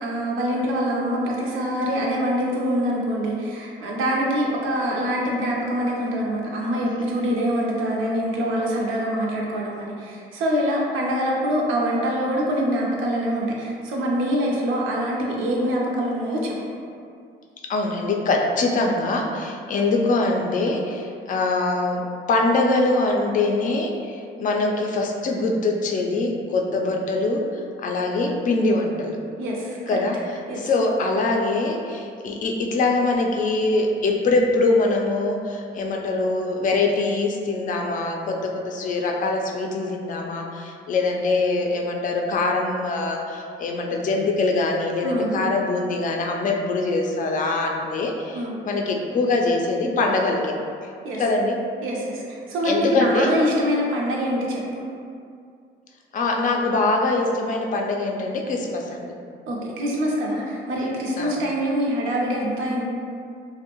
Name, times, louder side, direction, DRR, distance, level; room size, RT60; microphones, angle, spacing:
voice 1, 0.0-16.6 29.4-30.0 30.5-30.6 45.0-45.5 48.3-48.5 51.0-51.2 51.8-54.8 59.5-62.8, equal, 85° right, -2 dB, 0.5 m, -24 dB
voice 2, 17.7-22.0 22.3-29.2 29.9-50.5 50.8-50.9 51.2-51.6 52.6-53.3 56.1-59.1 61.2-61.3, left 3 dB, 40° left, 1 dB, 0.4 m, -23 dB
2.6 x 2.0 x 2.9 m, 2.3 s
cardioid pair, 90°, 20 cm